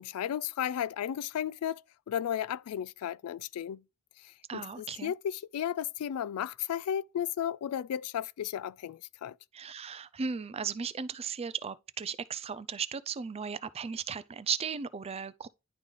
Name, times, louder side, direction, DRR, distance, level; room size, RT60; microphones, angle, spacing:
voice 1, 0.0-3.8 4.2-9.4, left 9 dB, 85° left, 0.3 m, -34 dB
voice 2, 4.5-5.1 9.5-15.5, right 6 dB, 30° right, 0.4 m, -36 dB
10.5 x 3.8 x 3.2 m
head